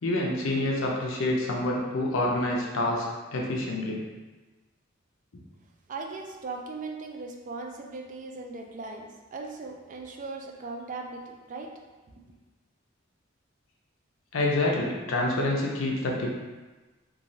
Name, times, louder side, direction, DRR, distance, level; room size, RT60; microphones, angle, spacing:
voice 1, 0.0-3.1 3.3-4.0 14.3-16.3, left 1 dB, 80° left, -2 dB, 0.6 m, -27 dB
voice 2, 5.9-11.8, right 3 dB, 40° right, 2 dB, 0.3 m, -38 dB
3.0 x 2.4 x 2.6 m, 1.2 s
head